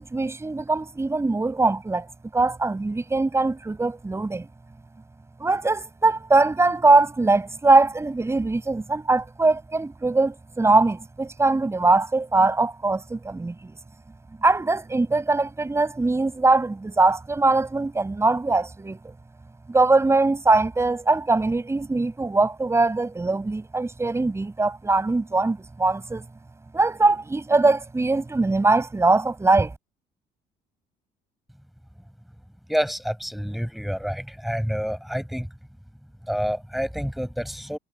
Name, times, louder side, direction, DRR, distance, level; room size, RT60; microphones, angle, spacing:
voice 1, 0.0-2.1 2.3-4.5 5.4-13.7 14.4-19.1 19.7-26.2 26.7-29.7, right 3 dB, 15° right, 5.2 m, -21 dB
voice 2, 32.7-35.5 36.3-37.8, equal, ahead, 5.9 m, -28 dB
cardioid pair, 110°, 17 cm